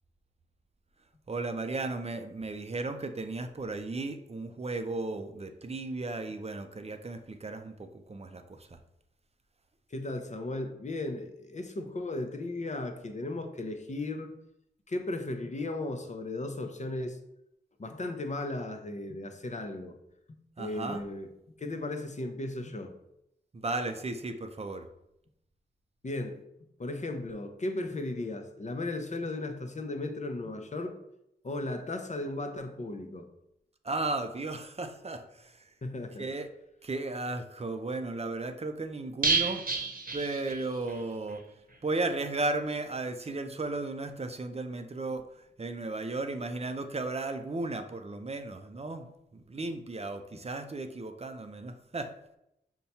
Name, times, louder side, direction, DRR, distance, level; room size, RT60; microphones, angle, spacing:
voice 1, 1.3-8.8 20.6-21.0 23.5-24.8 33.8-35.6 36.2-36.5 36.8-39.6 40.1-41.4 41.8-45.2 45.6-49.1 49.3-52.1, right 2 dB, 35° right, 7 dB, 0.5 m, -35 dB
voice 2, 9.9-14.3 14.9-17.2 17.8-20.0 20.3-21.3 21.6-22.9 26.0-26.4 26.8-31.0 31.4-33.3 35.8-36.3, left 2 dB, 40° left, 6 dB, 0.7 m, -36 dB
sound 1, 39.2-41.0 41.3-41.4 41.7-41.8, right 4 dB, 50° right, 0.9 m, -30 dB
5.5 x 2.2 x 4.2 m, 0.82 s
cardioid pair, 45°, 19 cm